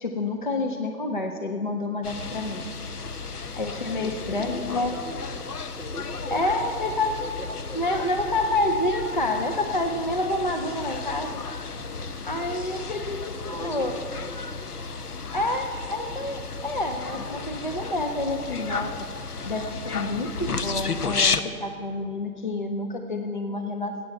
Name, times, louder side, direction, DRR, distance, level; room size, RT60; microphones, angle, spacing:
voice 1, 0.0-2.6 3.6-5.0 6.3-7.2 7.7-11.4 12.2-14.0 15.3-19.1 19.4-23.9, left 2 dB, 35° left, 4 dB, 0.5 m, -28 dB
sound 1, 2.0-21.4, left 4 dB, 85° left, 0.8 m, -33 dB
voice 2, 3.7-5.2 5.7-6.8 7.2-7.8 11.8-12.1 12.4-12.9 13.4-14.4, left 1 dB, 65° left, 3 dB, 1.9 m, -40 dB
11.5 x 8.4 x 7.8 m, 2.4 s
figure-of-eight pair, 145°, 45 cm